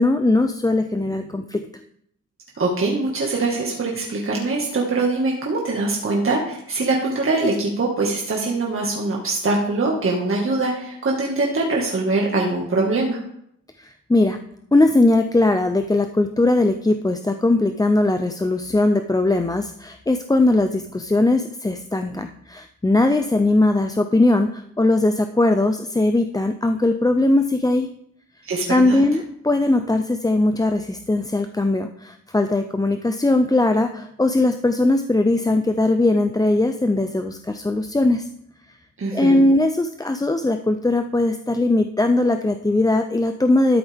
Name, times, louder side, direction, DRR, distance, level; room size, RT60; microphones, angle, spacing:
voice 1, 0.0-1.6 13.8-14.4 14.7-27.9 28.7-38.3 39.1-43.8, left 2 dB, 10° left, 7 dB, 0.6 m, -19 dB
voice 2, 2.6-13.2 28.4-29.0 39.0-39.5, right 3 dB, 40° right, -2 dB, 1.9 m, -23 dB
13.0 x 6.9 x 3.6 m, 0.71 s
cardioid pair, 65°, 33 cm